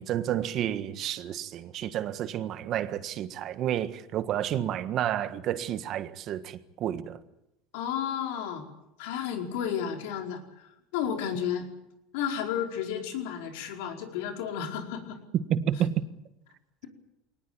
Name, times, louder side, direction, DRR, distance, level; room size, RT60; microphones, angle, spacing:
voice 1, 0.0-7.2 15.3-16.0, right 11 dB, 50° right, 1.5 m, -30 dB
voice 2, 7.7-8.6 9.0-11.7 12.1-15.2, left 8 dB, 80° left, 4.9 m, -32 dB
23.0 x 19.5 x 8.9 m
supercardioid pair, 120°, 0 cm